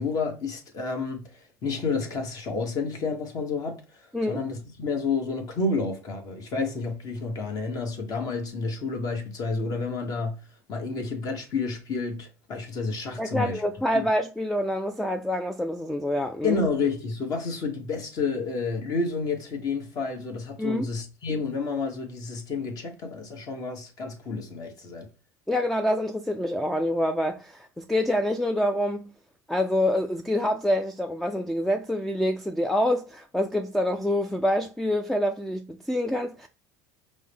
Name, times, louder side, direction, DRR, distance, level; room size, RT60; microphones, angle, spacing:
voice 1, 0.0-10.4 10.7-13.6 13.9-14.1 16.4-25.1, left 4 dB, 45° left, 1.2 m, -30 dB
voice 2, 13.2-16.6 20.6-20.9 25.5-29.1 29.5-36.5, left 1 dB, ahead, 0.3 m, -26 dB
5.2 x 2.1 x 3.4 m
supercardioid pair, 95°, 9 cm